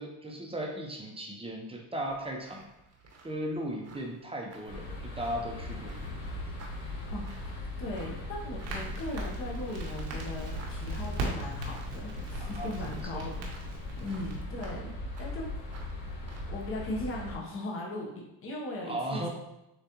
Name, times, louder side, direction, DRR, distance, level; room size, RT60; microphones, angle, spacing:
voice 1, 0.0-2.7 3.2-6.2 12.4-13.2 18.8-19.3, right 1 dB, 15° right, 0 dB, 0.8 m, -37 dB
sound 1, 2.1-16.9, right 2 dB, 35° right, 1.1 m, -56 dB
Baker Street - Bell of Marylebone Parish Church, 4.7-17.4, left 1 dB, 85° left, 1.3 m, -39 dB
voice 2, 7.1-13.6 14.0-14.9 15.2-15.5 16.5-18.1 18.4-19.3, left 1 dB, 30° left, -2 dB, 0.9 m, -38 dB
Crackle, 8.6-14.4, right 1 dB, 75° right, 1.4 m, -40 dB
7.0 x 2.5 x 2.9 m, 0.90 s
supercardioid pair, 95°, 44 cm